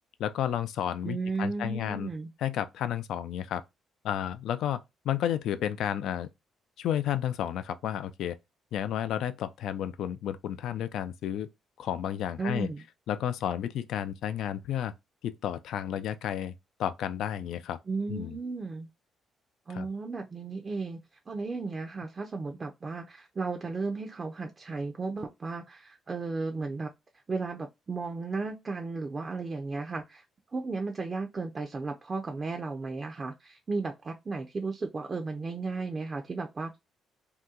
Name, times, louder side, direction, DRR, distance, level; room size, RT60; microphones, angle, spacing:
voice 1, 0.2-2.1 2.4-3.6 4.0-6.3 6.8-8.4 8.7-11.5 11.8-12.7 13.1-14.9 15.2-16.5 16.8-17.8 18.1-18.4 19.7-19.9, left 10 dB, 80° left, 0.3 m, -32 dB
voice 2, 1.0-2.3 12.4-12.8 17.9-18.9 19.7-26.9 27.3-30.2 30.5-36.8, right 3 dB, 35° right, 0.5 m, -34 dB
2.8 x 2.2 x 3.6 m
cardioid pair, 90°, 0 cm